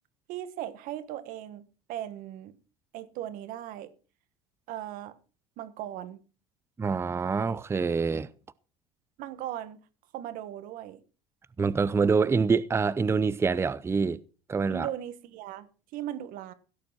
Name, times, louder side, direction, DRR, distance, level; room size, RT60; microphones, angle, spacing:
voice 1, 0.3-2.5 2.9-3.9 4.7-5.2 5.6-6.2 9.2-9.8 10.1-11.0 14.7-16.5, right 12 dB, 65° right, 1.6 m, -38 dB
voice 2, 6.8-8.3 11.6-14.2 14.5-14.9, right 5 dB, 15° right, 0.6 m, -26 dB
16.5 x 6.8 x 5.9 m
supercardioid pair, 115°, 15 cm